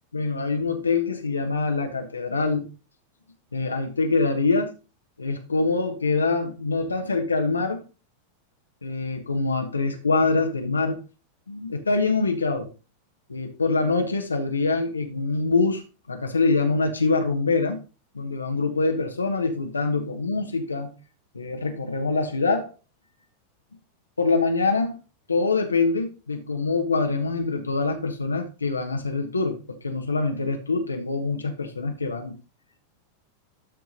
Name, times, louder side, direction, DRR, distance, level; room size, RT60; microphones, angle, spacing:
voice 1, 0.1-2.7 3.5-4.7 5.2-7.8 8.8-11.0 11.5-12.7 13.3-15.8 16.1-17.8 18.1-20.9 21.3-22.7 24.2-24.9 25.3-32.3, left 3 dB, 80° left, 3 dB, 1.5 m, -24 dB
12.5 x 4.6 x 4.0 m, 0.30 s
figure-of-eight pair, 90°, 0 cm